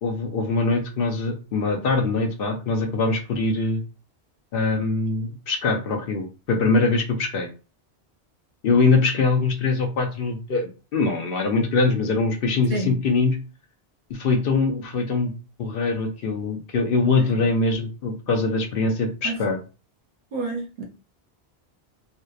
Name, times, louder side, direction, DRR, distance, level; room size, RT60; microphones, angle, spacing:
voice 1, 0.0-3.8 4.5-7.5 8.6-13.4 14.1-15.3 15.6-19.6, left 3 dB, 65° left, 0.7 m, -23 dB
voice 2, 20.3-20.8, right 3 dB, 60° right, 0.6 m, -28 dB
2.7 x 2.1 x 2.2 m
omnidirectional pair, 1.1 m